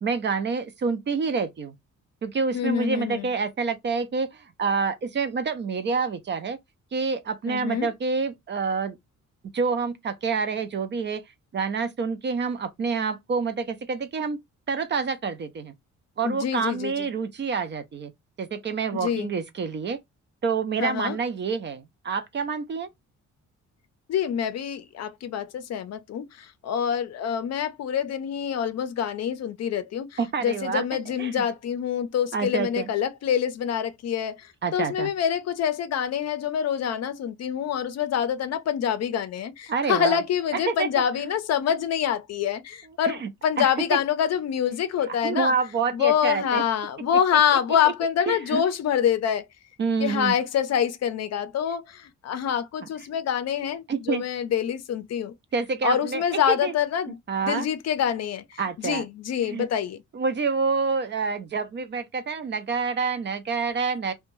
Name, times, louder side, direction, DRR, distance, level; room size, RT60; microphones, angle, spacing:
voice 1, 0.0-1.7 2.2-6.6 6.9-9.0 9.5-11.2 11.5-14.4 14.7-15.7 16.2-18.1 18.4-20.0 20.4-22.9 30.2-30.8 31.2-31.4 32.3-32.9 34.6-35.1 39.7-40.2 40.5-40.9 43.1-43.3 43.6-44.0 45.2-46.6 48.3-48.6 49.8-50.4 53.9-54.2 55.5-56.7 57.3-57.7 58.6-59.0 59.4-59.7 60.1-64.1, right 5 dB, 35° right, 0.4 m, -27 dB
voice 2, 2.5-3.3 7.5-7.9 16.2-17.1 18.9-19.3 20.8-21.2 24.1-45.5 45.9-49.5 50.0-55.3 55.8-57.2 57.4-60.0, left 9 dB, 55° left, 0.5 m, -26 dB
2.6 x 2.2 x 3.0 m
cardioid pair, 125°, 30 cm